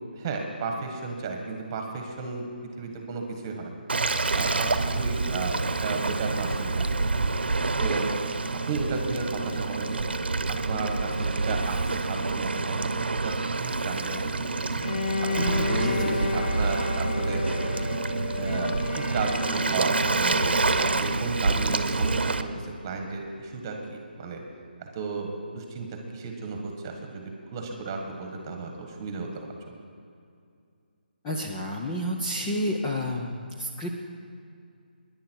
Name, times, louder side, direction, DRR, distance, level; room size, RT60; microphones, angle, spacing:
voice 1, 0.1-2.4 2.8-3.8 4.3-7.0 7.8-8.2 8.7-10.1 10.5-14.6 15.4-17.4 18.4-20.4 20.8-24.4 24.8-29.8, right 4 dB, 20° right, 3 dB, 1.6 m, -33 dB
Waves surf, 3.9-22.4, right 3 dB, 80° right, 1.0 m, -27 dB
Bowed string instrument, 14.8-21.5, left 3 dB, 60° left, 0.9 m, -32 dB
voice 2, 15.7-16.2 31.2-34.0, left 1 dB, 10° left, -1 dB, 0.7 m, -30 dB
26.0 x 10.5 x 4.6 m, 2.4 s
hypercardioid pair, 170°, 5 cm